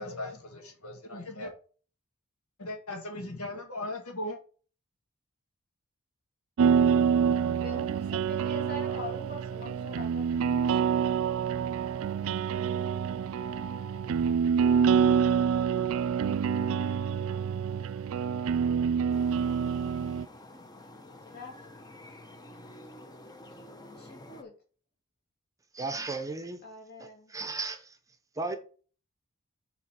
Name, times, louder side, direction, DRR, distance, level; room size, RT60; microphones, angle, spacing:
voice 1, 0.0-1.5 2.6-4.4, left 1 dB, 85° left, 1.8 m, -38 dB
sound 1, 6.6-20.3, right 7 dB, 65° right, 0.4 m, -27 dB
voice 2, 7.5-11.2 21.3-21.9 23.5-23.7 23.9-24.5 26.6-27.3, left 3 dB, 50° left, 2.7 m, -45 dB
sound 2, 19.1-24.4, left 1 dB, 20° left, 0.8 m, -49 dB
voice 3, 25.7-26.6 27.3-28.0 28.4-28.6, right 3 dB, 15° right, 0.8 m, -34 dB
7.4 x 4.1 x 5.7 m
head